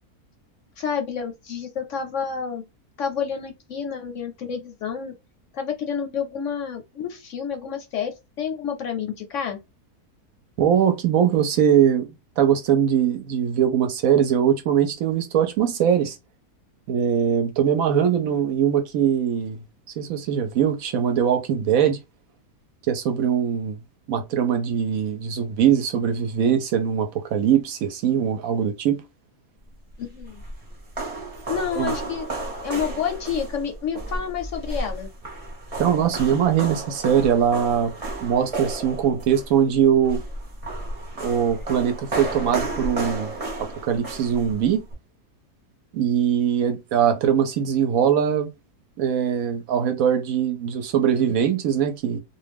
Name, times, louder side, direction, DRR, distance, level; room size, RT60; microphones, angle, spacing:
voice 1, 0.8-2.7 3.0-5.1 5.5-9.6 30.0-30.4 31.5-32.3 32.6-35.1, left 7 dB, 65° left, 0.8 m, -29 dB
voice 2, 10.6-12.1 12.4-16.2 16.9-19.6 20.0-22.0 22.9-23.8 24.1-29.0 31.8-31.9 35.8-37.9 38.2-40.2 41.2-43.3 43.8-44.8 45.9-48.5 49.0-52.2, right 8 dB, 70° right, 0.9 m, -21 dB
sound 1, 29.9-44.9, right 2 dB, 35° right, 0.6 m, -33 dB
2.5 x 2.2 x 3.3 m
omnidirectional pair, 1.6 m